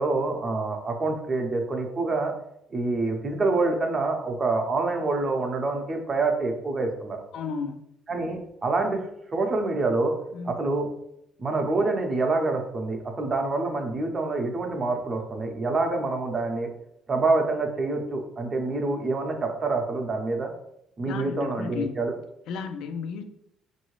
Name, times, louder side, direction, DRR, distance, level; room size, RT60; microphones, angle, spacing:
voice 1, 0.0-2.3 2.7-7.2 8.1-10.1 10.4-10.9 11.4-16.7 17.1-20.5 21.0-22.1, right 3 dB, 25° right, 3 dB, 0.7 m, -26 dB
voice 2, 7.3-7.8 10.3-10.6 21.1-22.0 22.5-23.2, left 5 dB, 70° left, 6 dB, 0.5 m, -33 dB
5.4 x 2.7 x 3.1 m, 0.77 s
cardioid pair, 150°, 0 cm